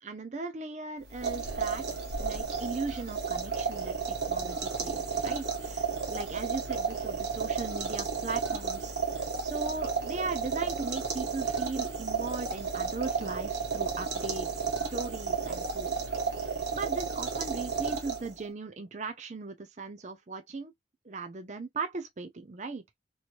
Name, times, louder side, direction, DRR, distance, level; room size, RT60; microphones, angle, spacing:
voice 1, 0.0-1.9 2.2-14.6 14.9-16.0 16.7-20.7 21.0-22.8, right 3 dB, 40° right, 0.5 m, -38 dB
sound 1, 1.1-18.5, right 5 dB, 65° right, 1.3 m, -32 dB
3.0 x 3.0 x 2.4 m
head